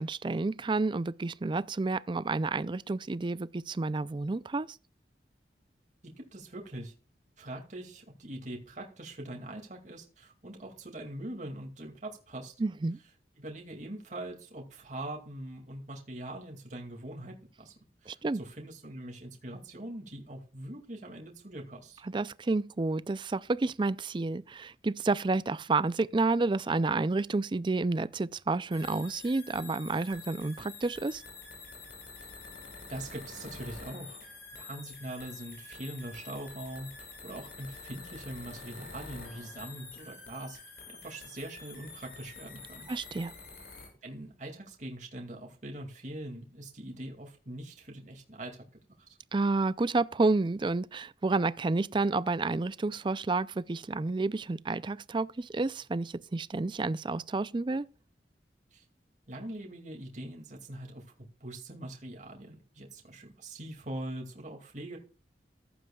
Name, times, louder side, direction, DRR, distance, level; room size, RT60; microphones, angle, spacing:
voice 1, 0.0-4.8 12.6-13.0 18.1-18.4 22.1-31.2 42.9-43.3 49.3-57.9, right 3 dB, 25° right, 0.4 m, -30 dB
voice 2, 6.2-6.9 7.4-12.5 13.4-22.0 32.2-32.3 32.9-34.2 34.5-40.6 40.9-42.9 44.0-48.6 49.0-49.2 58.7-58.8 59.3-61.0 61.4-65.0, right 1 dB, 45° right, 2.3 m, -42 dB
sound 1, 28.7-43.9, left 4 dB, 60° left, 6.5 m, -47 dB
14.5 x 11.0 x 2.3 m
head